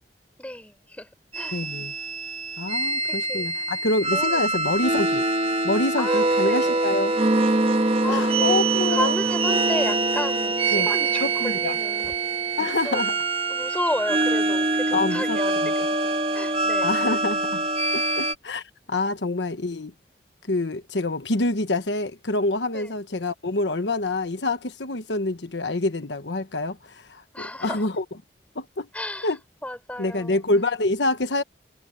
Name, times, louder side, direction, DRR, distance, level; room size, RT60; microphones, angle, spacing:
voice 1, 0.4-1.6 3.1-3.5 4.1-4.7 5.5-5.6 6.0-6.8 8.0-12.1 12.8-13.2 13.5-17.1 22.7-23.0 27.3-27.9 28.9-30.4, left 1 dB, 10° left, 5.5 m, -33 dB
sound 1, 1.3-18.3, right 3 dB, 35° right, 1.7 m, -24 dB
voice 2, 1.5-1.9 2.6-5.3 5.6-7.2 8.1-9.1 10.7-10.9 11.2-11.7 12.6-13.1 14.9-15.7 16.8-17.6 17.9-18.6 18.9-19.9 20.5-28.0 28.5-28.9 29.2-29.4 30.0-31.4, left 2 dB, 85° left, 1.2 m, -26 dB
head